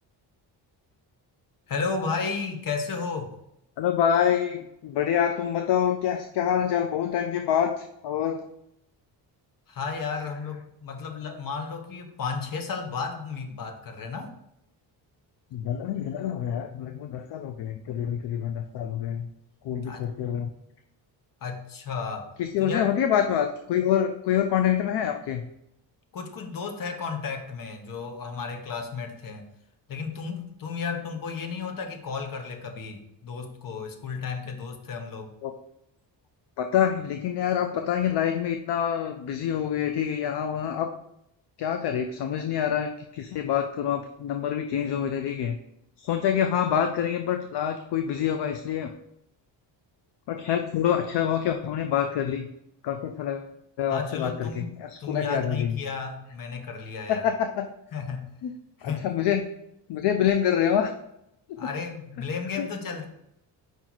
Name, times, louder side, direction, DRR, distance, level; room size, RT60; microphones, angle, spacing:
voice 1, 1.7-3.3 9.7-14.3 19.8-20.1 21.4-22.3 22.6-22.9 26.1-29.4 29.9-35.4 53.9-57.3 57.9-58.3 58.8-59.1 61.6-63.0, left 5 dB, 50° left, 5 dB, 1.1 m, -33 dB
voice 2, 3.8-8.5 15.5-19.3 19.6-20.5 22.4-25.5 35.4-35.5 36.6-40.9 41.6-45.6 46.0-48.9 50.3-52.5 52.8-53.5 53.8-55.7 57.1-57.7 58.4-58.5 58.8-59.4 59.9-60.9 61.5-61.7 62.6-62.7, left 9 dB, 65° left, 6 dB, 0.6 m, -26 dB
5.3 x 4.6 x 4.0 m, 0.79 s
cardioid pair, 110°, 43 cm